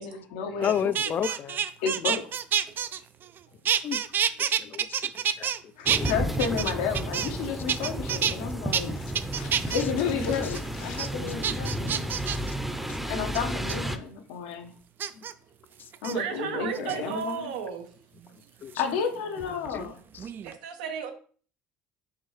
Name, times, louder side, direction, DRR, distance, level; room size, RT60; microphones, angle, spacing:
voice 1, 0.0-1.1 1.8-2.4 5.8-12.0 12.3-12.4 13.1-14.7 16.0-17.5 18.8-20.0, left 6 dB, 80° left, 5 dB, 0.9 m, -32 dB
voice 2, 0.6-1.6 3.8-4.0 4.4-5.1 5.4-5.5 6.0-6.1 7.7-7.8 18.6-18.7 19.7-19.9, left 9 dB, 45° left, 16 dB, 0.4 m, -31 dB
sound 1, 0.6-3.4 3.7-5.6 5.9-7.4 7.7-8.3 8.7-8.8 9.2-9.8 10.3-10.6 11.0-11.1 11.4-12.5 13.3-13.8 15.0-15.3 15.9-16.1 16.7-17.3 18.7-19.9 20.2-20.6, right 9 dB, 50° right, 0.4 m, -28 dB
sound 2, 5.9-14.0, equal, 5° right, 0.6 m, -32 dB
voice 3, 16.1-17.8 20.4-21.1, right 7 dB, 85° right, 6 dB, 0.9 m, -33 dB
4.7 x 3.5 x 3.2 m, 0.43 s
hypercardioid pair, 70°, 5 cm